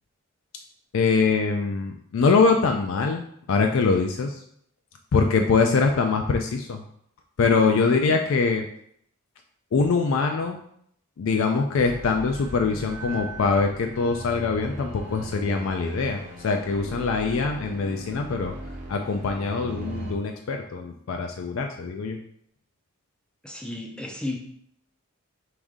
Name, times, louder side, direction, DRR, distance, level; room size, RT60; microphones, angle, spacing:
voice 1, 0.9-4.4 5.1-6.8 7.4-8.7 9.7-10.6 11.2-18.5 18.9-22.2, left 4 dB, 65° left, 3 dB, 0.4 m, -23 dB
sound 1, 11.7-20.1, right 1 dB, 35° right, 0.8 m, -38 dB
voice 2, 23.4-24.4, left 1 dB, 5° left, 2 dB, 0.4 m, -33 dB
4.9 x 2.6 x 3.6 m, 0.68 s
head